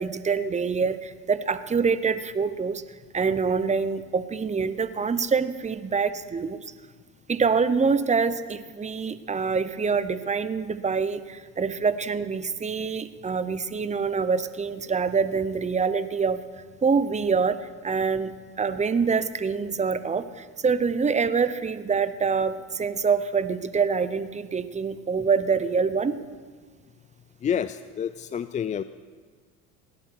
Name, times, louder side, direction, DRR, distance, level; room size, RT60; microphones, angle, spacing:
voice 1, 0.0-2.8 3.1-6.6 7.3-16.4 16.8-17.6 17.8-26.2, right 5 dB, 20° right, 13 dB, 0.9 m, -25 dB
voice 2, 27.4-28.8, left 8 dB, 20° left, 13 dB, 0.3 m, -28 dB
17.0 x 11.0 x 6.3 m, 1.5 s
supercardioid pair, 85°, 39 cm